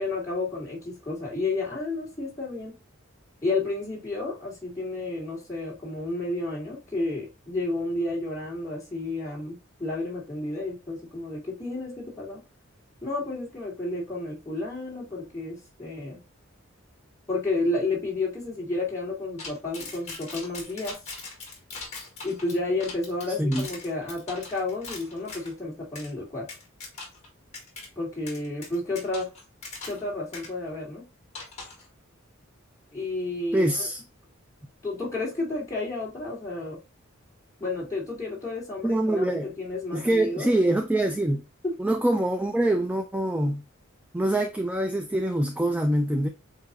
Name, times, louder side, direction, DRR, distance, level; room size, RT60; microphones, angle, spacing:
voice 1, 0.0-2.7 3.4-12.4 13.0-16.2 17.3-21.0 22.2-26.5 28.0-29.3 29.9-31.1 32.9-33.9 34.8-36.8 37.6-40.5 41.6-41.8, left 2 dB, 15° left, 2.6 m, -31 dB
sound 1, 19.4-25.5 26.0-26.1 26.5-27.3 27.5-27.9 28.3-30.1 30.3-30.5 31.3-31.9, left 3 dB, 35° left, 1.9 m, -40 dB
voice 2, 33.5-34.0 38.8-39.5 39.9-41.4 41.8-43.6 44.1-46.3, right 1 dB, 5° right, 0.3 m, -24 dB
7.9 x 2.8 x 2.4 m
head